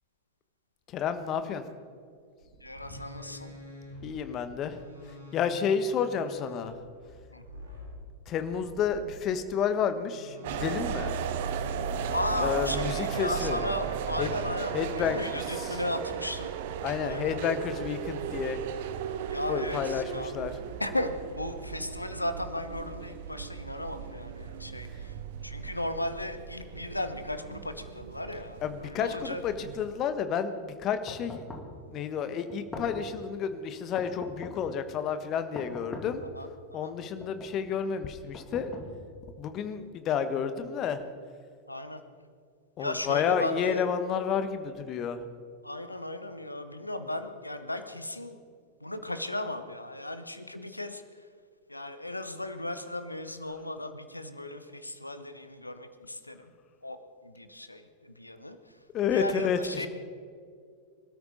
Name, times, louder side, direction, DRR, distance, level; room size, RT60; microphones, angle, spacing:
voice 1, 0.9-1.6 4.0-4.8 5.3-6.7 8.3-11.2 12.4-13.7 14.2-14.3 14.7-15.2 15.6-15.8 16.8-18.6 19.5-20.5 28.6-31.4 31.9-36.2 36.7-38.7 39.4-41.0 42.8-45.2 58.9-59.9, left 7 dB, 35° left, 10 dB, 1.3 m, -30 dB
sound 1, 2.4-9.2 10.0-11.0 12.3-12.5, left 1 dB, 80° right, 4.2 m, -48 dB
voice 2, 2.6-3.5 7.3-7.4 12.1-16.6 17.0-17.4 19.3-20.3 20.8-29.4 36.3-36.9 41.7-42.0 42.8-43.9 45.6-48.4 48.8-51.3 51.7-56.5 56.8-58.8 59.1-59.9, left 1 dB, 85° left, 10 dB, 1.1 m, -36 dB
sound 2, 10.4-29.9, right 8 dB, 55° right, 1.1 m, -36 dB
sound 3, 31.1-31.8 32.5-33.2 34.0-34.7 35.5-36.3 37.0-37.6 38.3-39.2, left 2 dB, 15° left, 2.7 m, -42 dB
25.5 x 13.0 x 4.1 m, 2.2 s
figure-of-eight pair, 90°, 0 cm